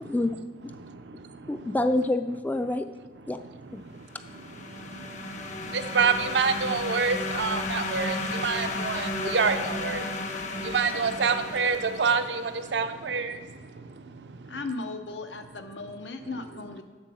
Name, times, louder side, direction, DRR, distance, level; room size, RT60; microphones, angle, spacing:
voice 1, 0.0-0.7 1.5-2.9 3.3-3.4 3.7-3.8, left 1 dB, 10° left, 0.3 m, -27 dB
voice 2, 0.8-1.7 3.8-4.1 4.7-14.6, right 5 dB, 75° right, 0.6 m, -28 dB
sound 1, 4.1-12.7, left 2 dB, 45° left, 0.8 m, -34 dB
voice 3, 14.5-16.8, left 3 dB, 90° left, 0.8 m, -36 dB
7.4 x 6.7 x 6.3 m
head